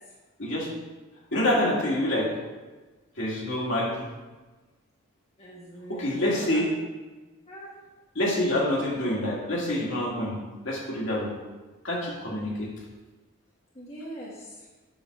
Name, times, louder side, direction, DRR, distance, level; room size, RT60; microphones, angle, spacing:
voice 1, 1.3-2.3 3.2-4.1 5.9-6.7 8.2-10.4 10.6-11.3 11.8-12.7, left 1 dB, 60° left, -4 dB, 2.2 m, -26 dB
voice 2, 5.4-6.7 7.5-7.7 12.4-12.6 13.7-14.7, equal, 30° left, -6 dB, 1.3 m, -42 dB
8.7 x 4.0 x 6.6 m, 1.2 s
head